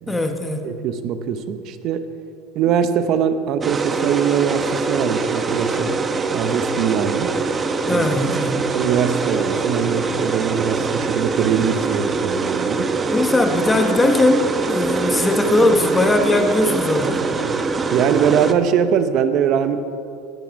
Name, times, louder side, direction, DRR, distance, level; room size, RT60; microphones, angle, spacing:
voice 1, 0.1-0.7 7.9-8.8 13.1-17.3, left 2 dB, 10° left, 6 dB, 1.0 m, -19 dB
voice 2, 0.6-2.1 2.5-5.9 6.3-7.3 7.9-8.1 8.7-12.9 17.4-17.6 17.9-19.8, right 8 dB, 50° right, 10 dB, 0.9 m, -21 dB
sound 1, 3.6-18.5, right 4 dB, 20° right, 0.8 m, -23 dB
19.5 x 8.7 x 5.2 m, 2.5 s
supercardioid pair, 125°, 0 cm